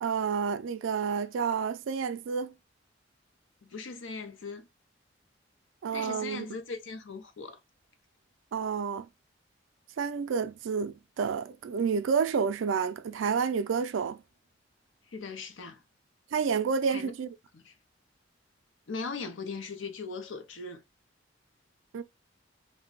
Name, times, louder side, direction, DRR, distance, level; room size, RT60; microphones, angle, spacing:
voice 1, 0.0-2.5 5.8-6.5 8.5-9.1 10.0-14.2 16.3-17.3 21.9-22.0, right 6 dB, 90° right, 0.4 m, -29 dB
voice 2, 3.6-4.7 5.9-7.6 15.1-15.8 16.9-17.1 17.5-17.7 18.9-20.8, left 4 dB, 90° left, 0.7 m, -39 dB
2.5 x 2.2 x 3.8 m
head